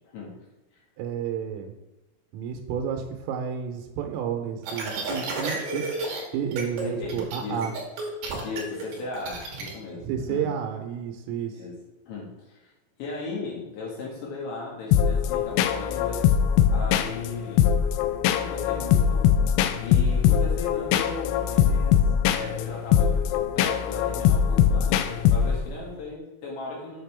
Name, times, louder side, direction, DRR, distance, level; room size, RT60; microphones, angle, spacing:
voice 1, 1.0-1.8 2.3-5.9 6.3-7.7 10.0-11.6, right 8 dB, 85° right, 5 dB, 3.5 m, -31 dB
sound 1, 4.6-6.2 6.5-6.8 7.1-9.7, right 3 dB, 60° right, 3.2 m, -31 dB
voice 2, 6.8-7.8 8.4-10.5 11.5-11.8 12.1-12.7 13.0-16.3 16.7-17.8 18.4-19.3 19.8-22.0 22.3-27.0, left 3 dB, 65° left, -3 dB, 3.7 m, -37 dB
sound 2, 14.9-25.8, left 9 dB, 90° left, 3.3 m, -22 dB
8.4 x 6.6 x 3.5 m, 1.0 s
omnidirectional pair, 5.9 m